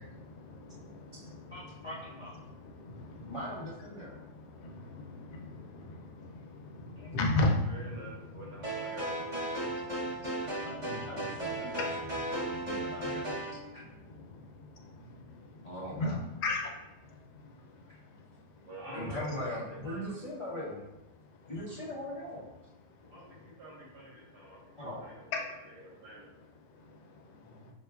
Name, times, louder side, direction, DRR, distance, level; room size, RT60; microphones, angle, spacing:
voice 1, 0.3-8.9 9.5-18.7 21.1-21.8 22.9-23.6 24.2-24.8 25.3-25.5 25.9-26.0 26.3-27.7, left 2 dB, 80° left, 1 dB, 1.2 m, -39 dB
voice 2, 1.5-2.3 3.3-4.2 7.0-7.1 10.6-11.9 12.5-13.3 13.7-13.8 15.6-16.2 17.9-18.0 18.9-20.8 21.5-22.5 24.8-25.0, left 1 dB, 55° left, -9 dB, 0.3 m, -40 dB
voice 3, 7.7-9.4 11.6-11.7 18.7-20.1 23.1-25.1 25.8-26.3, right 1 dB, 85° right, -5 dB, 1.7 m, -47 dB
sound 1, 8.6-13.6, right 1 dB, 40° right, 0.4 m, -35 dB
5.4 x 2.3 x 2.2 m, 0.94 s
omnidirectional pair, 1.7 m